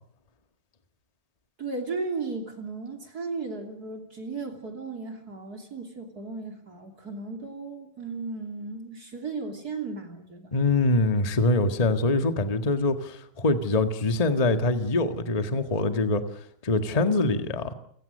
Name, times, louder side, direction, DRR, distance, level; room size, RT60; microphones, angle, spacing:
voice 1, 1.6-10.6, right 4 dB, 30° right, 3.3 m, -35 dB
voice 2, 10.5-16.2 16.6-17.7, left 2 dB, 20° left, 1.0 m, -24 dB
29.5 x 17.0 x 6.7 m
omnidirectional pair, 3.6 m